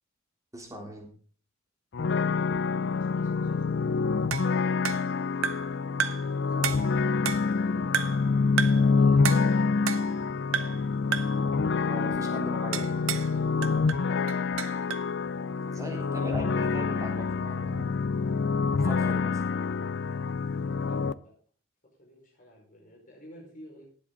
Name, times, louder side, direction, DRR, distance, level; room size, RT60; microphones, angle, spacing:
voice 1, 0.5-1.1 11.8-13.1 15.7-17.9 18.7-19.4, equal, 15° right, 1 dB, 3.4 m, -39 dB
sound 1, 1.9-21.1, left 4 dB, 60° left, 0.5 m, -27 dB
voice 2, 2.5-3.9 4.7-8.3 8.7-10.1 11.9-12.0 13.3-14.5 20.5-21.4 21.8-23.8, equal, 40° left, -2 dB, 4.9 m, -52 dB
sound 2, 4.3-5.7 6.0-6.3 6.6-7.6 7.9-8.3 8.6-8.9 9.2-10.2 10.5-10.9 11.1-11.4 12.7-13.3 13.6-15.1, right 7 dB, 75° right, 0.7 m, -32 dB
18.5 x 7.6 x 3.9 m, 0.43 s
head